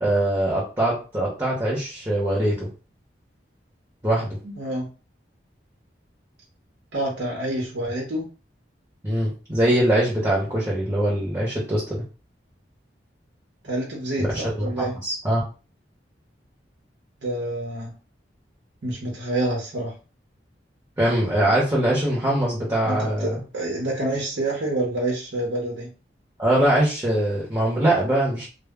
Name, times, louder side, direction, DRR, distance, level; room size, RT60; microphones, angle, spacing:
voice 1, 0.0-2.7 4.0-4.4 9.0-12.0 14.2-15.4 21.0-23.4 26.4-28.5, right 1 dB, 15° right, -6 dB, 0.7 m, -22 dB
voice 2, 4.4-4.9 6.9-8.3 13.6-15.0 17.2-17.9 18.8-19.9 22.8-25.9, right 1 dB, 75° right, -2 dB, 0.7 m, -27 dB
2.0 x 2.0 x 3.5 m, 0.34 s
head